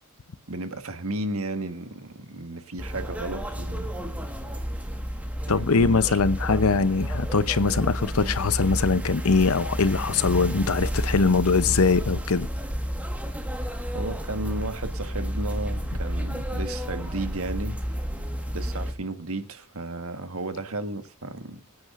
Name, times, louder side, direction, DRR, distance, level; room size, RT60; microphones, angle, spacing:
voice 1, 0.5-3.9 5.5-6.2 13.9-17.8 18.5-21.6, right 2 dB, 70° right, 1.5 m, -33 dB
sound 1, 2.8-18.9, equal, 5° right, 1.6 m, -31 dB
voice 2, 5.5-12.5, left 4 dB, 80° left, 0.8 m, -22 dB
24.0 x 9.6 x 2.6 m
head